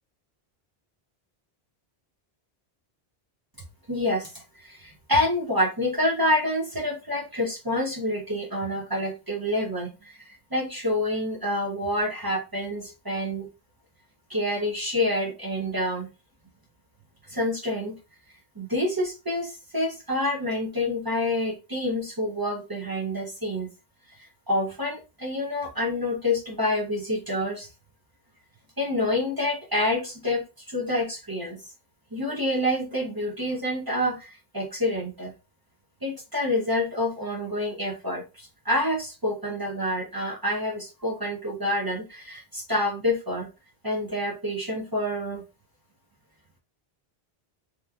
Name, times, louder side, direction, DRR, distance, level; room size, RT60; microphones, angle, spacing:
voice 1, 3.9-13.5 14.3-16.1 17.3-17.9 18.6-23.7 24.2-27.7 28.8-31.6 32.1-35.3 36.0-43.5 43.8-45.4, left 1 dB, 30° right, 0 dB, 0.4 m, -27 dB
2.9 x 2.3 x 2.2 m, 0.29 s
omnidirectional pair, 1.1 m